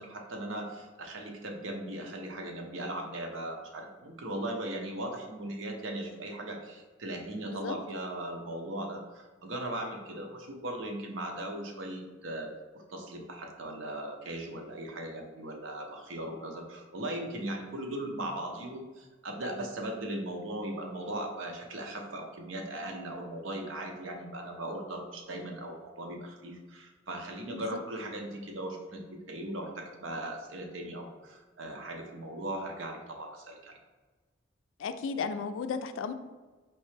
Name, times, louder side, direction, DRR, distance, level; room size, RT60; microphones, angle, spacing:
voice 1, 0.0-12.5 12.9-29.0 29.3-33.8, right 1 dB, 85° right, 2 dB, 0.8 m, -38 dB
voice 2, 7.5-7.8 27.5-27.8 34.8-36.1, left 5 dB, 90° left, 9 dB, 0.3 m, -34 dB
4.5 x 3.2 x 3.2 m, 1.3 s
head